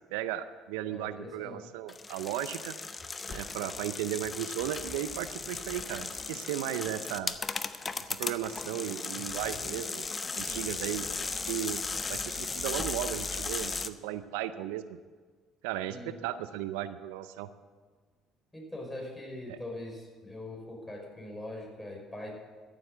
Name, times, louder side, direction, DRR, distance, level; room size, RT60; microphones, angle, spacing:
voice 1, 0.1-2.7 3.3-7.3 8.2-10.1 10.3-11.1 11.5-11.8 12.1-15.0 15.6-17.5 19.5-19.6, right 12 dB, 80° right, 13 dB, 0.5 m, -35 dB
voice 2, 0.9-1.6 15.9-16.2 18.5-22.3, left 1 dB, 10° left, -1 dB, 5.4 m, -42 dB
sound 1, 1.9-13.9, left 4 dB, 30° left, 0.8 m, -36 dB
14.0 x 7.7 x 7.8 m, 1.5 s
hypercardioid pair, 60°, 0 cm